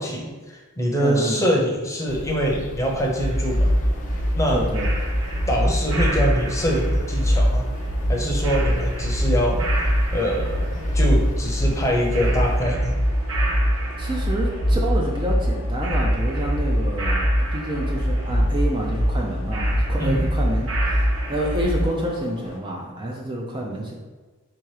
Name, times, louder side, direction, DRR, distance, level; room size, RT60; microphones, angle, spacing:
voice 1, 0.0-3.7 4.4-4.6 5.5-7.7 8.1-9.7 10.1-12.9 20.0-20.2, equal, 15° left, -1 dB, 0.8 m, -24 dB
voice 2, 1.0-1.4 4.5-4.9 14.0-23.9, right 1 dB, 25° right, -1 dB, 0.5 m, -28 dB
sound 1, 2.1-12.6, left 1 dB, 35° left, 0.4 m, -36 dB
sound 2, 3.2-21.8, equal, 80° right, 1.0 m, -23 dB
sound 3, 3.6-22.6, left 1 dB, 75° left, 0.8 m, -41 dB
3.5 x 3.0 x 4.8 m, 1.3 s
head